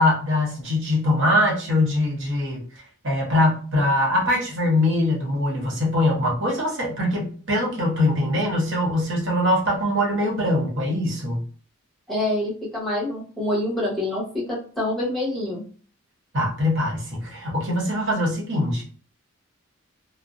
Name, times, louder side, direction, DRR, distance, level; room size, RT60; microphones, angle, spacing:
voice 1, 0.0-2.6 3.0-11.4 16.3-18.8, left 1 dB, 60° right, -1 dB, 0.8 m, -22 dB
voice 2, 12.1-15.6, left 1 dB, ahead, -6 dB, 0.9 m, -26 dB
2.5 x 2.0 x 2.5 m, 0.41 s
head